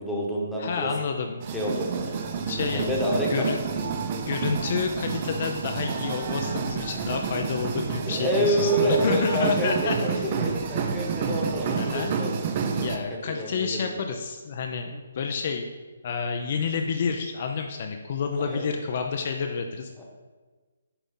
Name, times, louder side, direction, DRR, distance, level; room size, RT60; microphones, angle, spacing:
voice 1, 0.0-0.9 1.5-2.1 2.7-3.5 8.0-12.8 13.1-13.9 18.5-18.7 20.0-20.1, equal, ahead, -5 dB, 1.1 m, -28 dB
voice 2, 0.6-1.4 2.5-2.9 3.3-3.6 4.3-10.3 11.7-12.1 12.8-15.7 16.0-20.0, left 5 dB, 45° left, 4 dB, 0.4 m, -29 dB
sound 1, 1.4-13.0, right 6 dB, 35° right, 0.6 m, -29 dB
6.9 x 4.0 x 3.7 m, 1.3 s
figure-of-eight pair, 140°, 0 cm